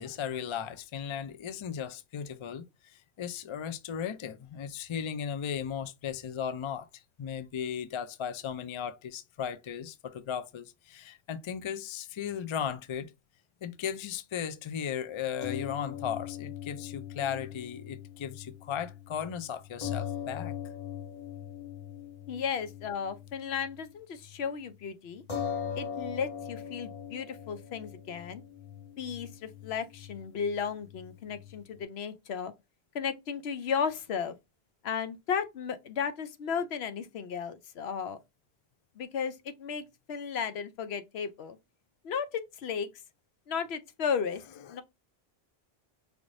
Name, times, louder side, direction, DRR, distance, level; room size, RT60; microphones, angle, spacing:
voice 1, 0.0-13.1 13.6-20.5 44.7-44.8, left 8 dB, 50° left, 0.3 m, -36 dB
sound 1, 15.4-23.9 24.2-24.4 25.3-31.8, left 8 dB, 35° left, 0.9 m, -41 dB
voice 2, 22.3-25.2 25.7-28.4 29.0-32.5 32.9-34.4 34.8-38.2 39.0-41.6 42.0-42.9 43.5-44.4 44.7-44.8, left 6 dB, 80° left, 0.9 m, -34 dB
5.0 x 2.6 x 3.1 m
omnidirectional pair, 1.0 m